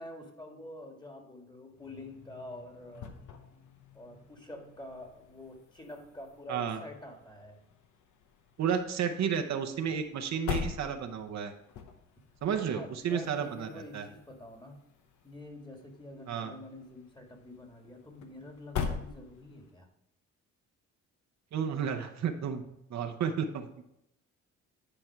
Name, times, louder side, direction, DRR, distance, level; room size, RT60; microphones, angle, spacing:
voice 1, 0.0-3.1 3.9-7.6 12.5-14.8 15.2-19.9, left 1 dB, 15° left, 3 dB, 1.7 m, -47 dB
sound 1, 1.7-19.8, left 6 dB, 75° left, 1.1 m, -44 dB
voice 2, 6.5-6.8 8.6-11.5 12.4-13.7 13.9-14.1 16.3-16.5 21.5-22.6 22.9-23.8, right 7 dB, 65° right, 6 dB, 0.9 m, -32 dB
10.0 x 4.3 x 4.6 m, 0.80 s
cardioid pair, 90°, 30 cm